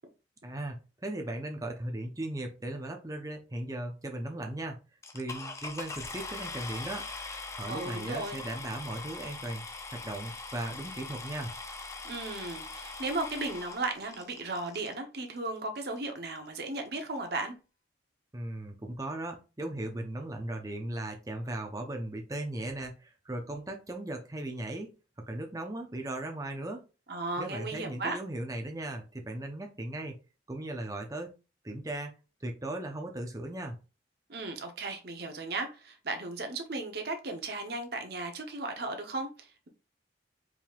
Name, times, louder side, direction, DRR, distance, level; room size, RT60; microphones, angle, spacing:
voice 1, 0.4-4.8 5.1-7.1 7.5-9.6 9.9-11.5 18.3-24.9 25.3-26.8 27.4-30.2 30.5-31.4 31.6-32.1 32.4-33.7, right 1 dB, 20° right, 0.7 m, -37 dB
sound 1, 5.0-15.0 15.8-15.9 16.4-16.5 16.7-17.0, left 3 dB, 15° left, 0.5 m, -42 dB
voice 2, 7.7-8.4 12.0-17.5 27.1-28.2 34.3-39.7, right 2 dB, 55° right, 0.9 m, -36 dB
4.7 x 3.7 x 2.4 m
head